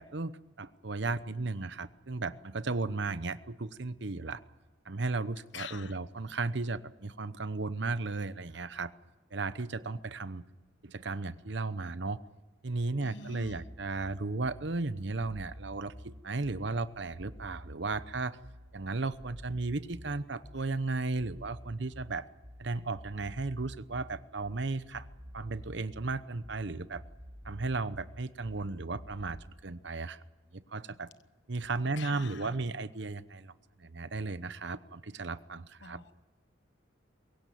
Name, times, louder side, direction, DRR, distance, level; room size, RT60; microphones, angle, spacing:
voice 1, 0.0-4.4 4.9-8.9 9.3-10.4 10.8-12.2 12.6-18.4 18.7-22.3 22.6-25.1 25.3-27.0 27.4-30.2 30.5-31.1 31.5-33.5 33.8-36.0, right 3 dB, 60° right, 14 dB, 0.9 m, -35 dB
voice 2, 5.5-6.0 13.0-13.6 32.0-32.5 35.8-36.1, left 5 dB, 65° left, 12 dB, 1.1 m, -45 dB
sound 1, 13.4-29.4, equal, 30° right, 7.1 m, -49 dB
22.5 x 16.5 x 9.3 m, 1.2 s
head